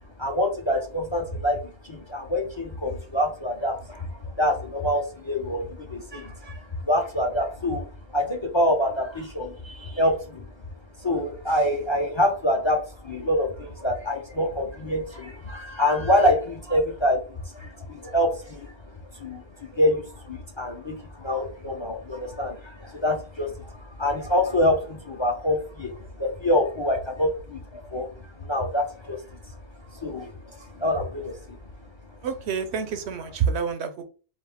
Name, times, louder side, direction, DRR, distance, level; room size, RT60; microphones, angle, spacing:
voice 1, 0.2-7.9 8.1-10.5 11.0-18.7 19.1-28.1 28.4-29.5 29.9-31.6, left 1 dB, 30° left, 2 dB, 0.6 m, -26 dB
voice 2, 32.2-34.0, right 6 dB, 70° right, 9 dB, 0.8 m, -27 dB
4.3 x 2.6 x 3.5 m, 0.36 s
omnidirectional pair, 1.2 m